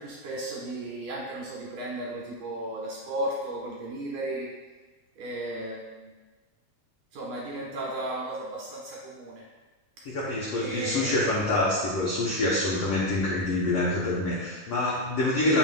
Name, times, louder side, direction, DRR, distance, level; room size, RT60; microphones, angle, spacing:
voice 1, 0.0-4.5 5.2-6.1 7.1-9.4 10.6-11.1, right 1 dB, 70° right, -4 dB, 2.6 m, -34 dB
voice 2, 10.0-15.6, left 2 dB, 75° left, -5 dB, 1.4 m, -26 dB
9.0 x 5.8 x 2.2 m, 1.3 s
omnidirectional pair, 4.0 m